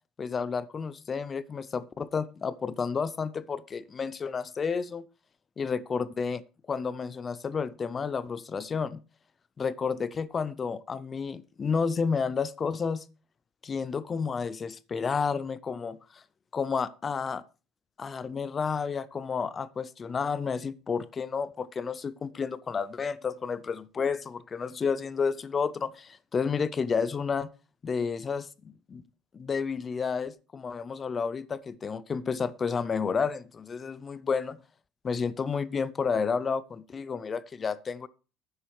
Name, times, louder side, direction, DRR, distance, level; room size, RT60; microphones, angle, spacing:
voice 1, 0.2-5.1 5.6-6.4 6.7-9.0 9.6-13.0 13.6-16.2 16.5-17.4 18.0-27.5 27.8-29.0 29.3-34.6 35.0-38.1, left 5 dB, 20° left, 0.4 m, -31 dB
10.0 x 7.9 x 4.6 m
cardioid pair, 175°, 0 cm